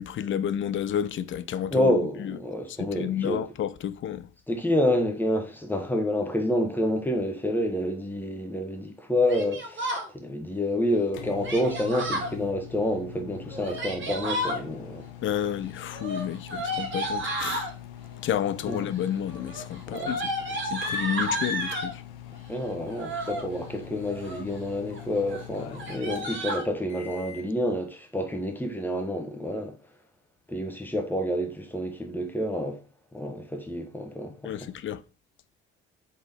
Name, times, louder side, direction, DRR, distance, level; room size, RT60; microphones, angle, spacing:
voice 1, 0.0-1.9 2.2-2.4 2.8-4.3 15.2-17.7 18.2-20.2 20.6-22.0 34.4-35.0, left 9 dB, 40° left, 0.4 m, -30 dB
voice 2, 1.7-3.4 4.5-15.1 18.7-18.8 19.9-20.1 22.5-29.7 30.5-32.8 33.1-34.5, left 1 dB, 5° left, 1.1 m, -28 dB
Yell, 9.3-10.1 11.4-12.3 13.5-14.6 15.9-17.7 18.6-19.0 19.3-21.9 22.9-23.4 24.0-24.5 24.9-25.0 25.3-25.4 25.7-26.6, equal, 35° right, 1.5 m, -32 dB
sound 1, 10.6-27.5, left 11 dB, 70° left, 0.7 m, -44 dB
3.9 x 3.7 x 3.5 m
hypercardioid pair, 55°, 32 cm